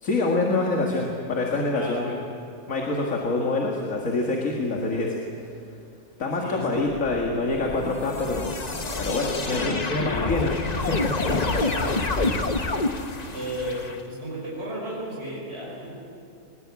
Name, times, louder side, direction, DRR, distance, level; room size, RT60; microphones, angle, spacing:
voice 1, 0.0-2.2 2.7-5.2 6.2-8.5 9.0-10.5 10.9-11.1, left 2 dB, 80° left, -1 dB, 2.3 m, -26 dB
voice 2, 1.7-2.2 6.4-6.9 9.4-10.4 11.0-12.4 13.3-16.0, equal, 50° right, -5 dB, 5.9 m, -35 dB
sound 1, 6.9-14.0, left 3 dB, 35° left, 1.1 m, -28 dB
21.0 x 21.0 x 8.4 m, 2.6 s
omnidirectional pair, 1.4 m